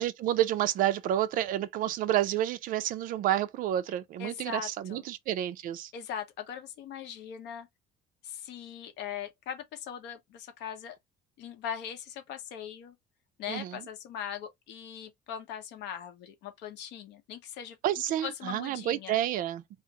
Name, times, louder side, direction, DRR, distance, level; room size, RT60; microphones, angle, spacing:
voice 1, 0.0-5.9 13.5-13.8 17.8-19.6, right 12 dB, 50° right, 0.4 m, -29 dB
voice 2, 4.2-5.0 5.9-7.7 8.2-11.0 11.4-12.9 13.4-17.8 18.2-19.2, left 9 dB, 75° left, 0.9 m, -40 dB
2.5 x 2.5 x 4.0 m
cardioid pair, 170°, 18 cm